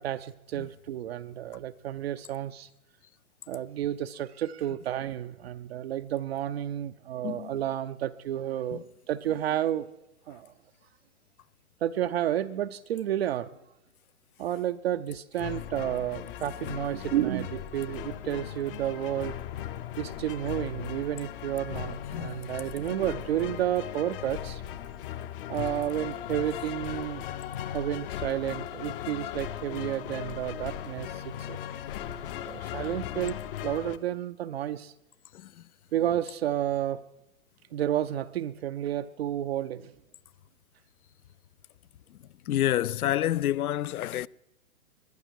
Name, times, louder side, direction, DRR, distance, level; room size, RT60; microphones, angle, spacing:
voice 1, 0.0-2.7 3.5-9.9 10.3-10.5 11.8-13.5 14.4-19.4 20.0-24.6 25.5-27.2 27.7-31.6 32.1-33.4 33.6-34.9 35.9-37.0 37.7-39.9, right 11 dB, 45° right, 0.5 m, -31 dB
sound 1, 15.4-34.0, left 11 dB, 40° left, 0.8 m, -38 dB
voice 2, 42.5-44.3, left 12 dB, 80° left, 0.5 m, -28 dB
20.5 x 11.0 x 4.7 m
hypercardioid pair, 130°, 43 cm